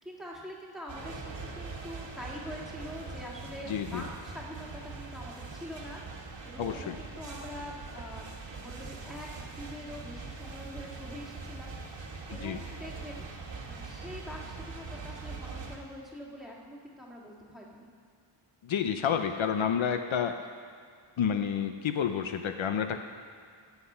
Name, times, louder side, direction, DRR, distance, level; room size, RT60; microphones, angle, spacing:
voice 1, 0.0-13.3 13.6-17.9, equal, ahead, -4 dB, 2.0 m, -45 dB
sound 1, 0.9-15.8, right 4 dB, 60° right, 1.5 m, -42 dB
voice 2, 3.7-4.0 6.6-7.0 12.3-12.6 18.6-20.3 21.2-23.0, left 8 dB, 70° left, 7 dB, 0.7 m, -29 dB
14.0 x 8.0 x 5.6 m, 2.2 s
wide cardioid pair, 125°, 49 cm